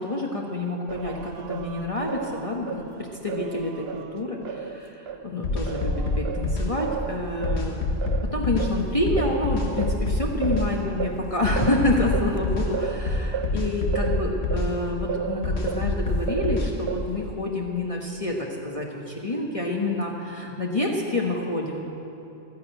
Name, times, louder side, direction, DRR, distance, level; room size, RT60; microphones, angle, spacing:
voice 1, 0.0-7.8 8.2-21.8, left 2 dB, 30° left, -2 dB, 1.2 m, -28 dB
Singing, 0.9-5.2 5.7-15.9 16.3-17.3, right 7 dB, 65° right, 0.9 m, -34 dB
sound 1, 5.4-6.7 7.4-8.7 9.1-10.7 11.4-12.7 13.1-14.7 15.4-16.7, left 2 dB, 70° left, 1.6 m, -26 dB
13.0 x 10.0 x 8.9 m, 3.0 s
omnidirectional pair, 1.2 m